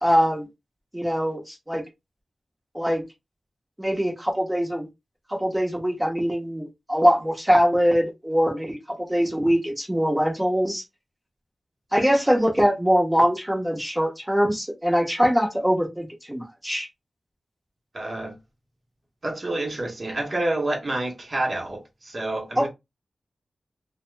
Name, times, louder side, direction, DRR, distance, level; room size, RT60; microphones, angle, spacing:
voice 1, 0.0-0.5 0.9-1.8 2.7-3.0 3.8-4.9 5.3-8.8 9.1-10.8 11.9-16.9 22.6-22.7, equal, 10° right, 0.8 m, -22 dB
voice 2, 17.9-18.4 19.2-22.7, right 1 dB, 40° right, 0.9 m, -28 dB
2.8 x 2.0 x 3.2 m
wide cardioid pair, 125°, 0 cm